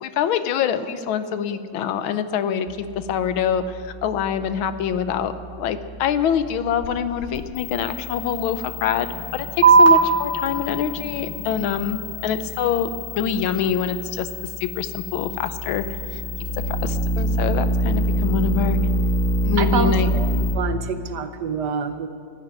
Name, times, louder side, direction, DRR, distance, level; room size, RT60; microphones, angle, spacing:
voice 1, 0.0-12.9 13.2-14.3 14.6-15.8 16.1-16.2 16.7-18.8 19.4-20.1, left 8 dB, 85° left, 11 dB, 1.6 m, -25 dB
sound 1, 2.7-20.5, equal, 45° left, 1.9 m, -27 dB
sound 2, 9.6-16.6, right 5 dB, 25° right, 2.9 m, -23 dB
voice 2, 19.6-20.3 20.5-22.1, right 6 dB, 65° right, 9 dB, 1.3 m, -26 dB
15.5 x 9.3 x 9.8 m, 2.3 s
omnidirectional pair, 2.2 m